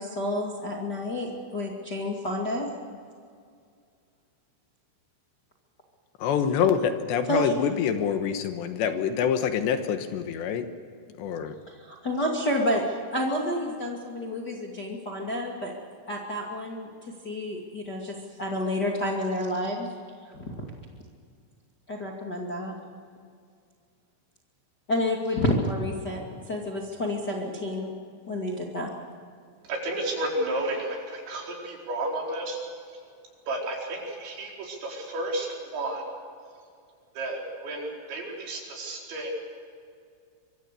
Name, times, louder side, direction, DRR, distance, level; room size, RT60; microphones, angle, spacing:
voice 1, 0.0-2.7 7.3-7.5 11.7-15.7 16.1-19.9 20.3-20.6 21.9-22.7 24.9-27.9 28.3-28.9, left 1 dB, 30° left, -1 dB, 2.0 m, -29 dB
voice 2, 6.2-10.7 11.2-11.6, left 7 dB, 75° left, 8 dB, 3.2 m, -26 dB
voice 3, 29.7-32.6 33.5-36.0 37.1-39.3, right 1 dB, 70° right, -1 dB, 6.8 m, -32 dB
26.0 x 24.0 x 6.9 m, 2.2 s
omnidirectional pair, 5.4 m